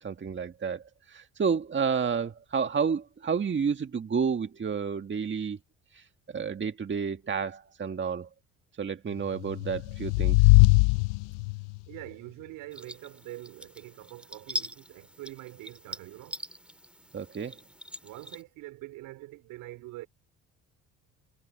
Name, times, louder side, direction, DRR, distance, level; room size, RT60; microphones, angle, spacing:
voice 1, 0.0-5.6 5.9-8.3 8.8-10.6 17.1-17.6, right 6 dB, 35° right, 1.9 m, -30 dB
sound 1, 9.4-11.8, left 26 dB, 80° left, 0.6 m, -21 dB
voice 2, 11.9-16.4 18.0-20.1, right 18 dB, 75° right, 4.6 m, -44 dB
sound 2, 12.7-18.4, left 1 dB, 5° right, 1.9 m, -42 dB
hypercardioid pair, 65°, 33 cm